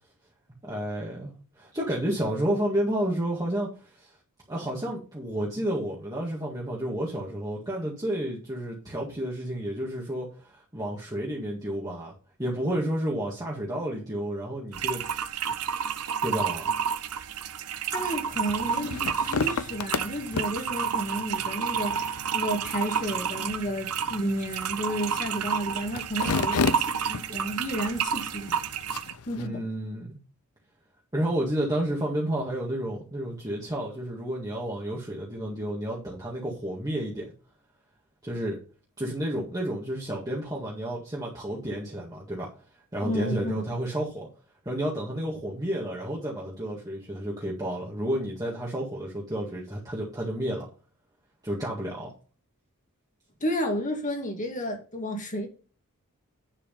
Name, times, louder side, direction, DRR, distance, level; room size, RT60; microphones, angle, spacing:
voice 1, 0.6-1.3 1.6-4.1 4.5-12.1 12.4-15.0 16.2-16.7 29.4-30.1 31.1-37.3 38.2-38.6 39.0-42.5 42.9-44.3 44.7-50.7 51.4-52.1, right 1 dB, 15° right, 1.9 m, -31 dB
sound 1, 14.7-29.1, right 7 dB, 90° right, 0.8 m, -30 dB
voice 2, 17.9-28.6 29.3-29.6 43.0-43.6 53.4-55.5, equal, 35° left, 2.2 m, -32 dB
sound 2, 18.3-29.5, left 5 dB, 75° left, 0.6 m, -34 dB
10.5 x 4.9 x 5.3 m
head